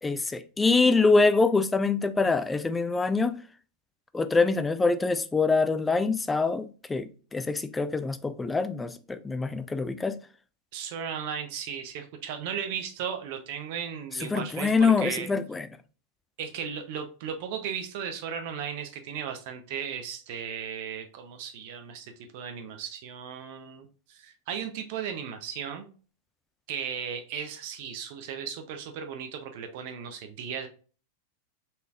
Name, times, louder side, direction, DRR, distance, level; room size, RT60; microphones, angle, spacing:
voice 1, 0.0-3.4 4.1-10.2 14.3-15.7, left 4 dB, 10° left, 0.4 m, -25 dB
voice 2, 10.7-15.3 16.4-25.9 26.7-30.7, right 7 dB, 50° right, 0.6 m, -36 dB
4.2 x 3.3 x 2.4 m
figure-of-eight pair, 90°, 0 cm